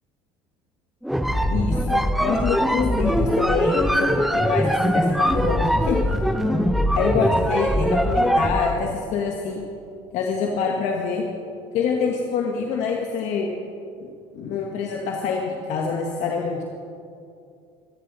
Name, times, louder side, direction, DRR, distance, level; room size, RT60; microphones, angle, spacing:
sound 1, 1.0-8.8, equal, ahead, 0.6 m, -21 dB
voice 1, 1.5-6.0 6.9-9.6 10.1-11.2 11.7-13.5 14.0-14.1 14.3-16.6, left 5 dB, 65° left, 0 dB, 1.5 m, -26 dB
24.0 x 9.6 x 4.0 m, 2.5 s
cardioid pair, 115°, 13 cm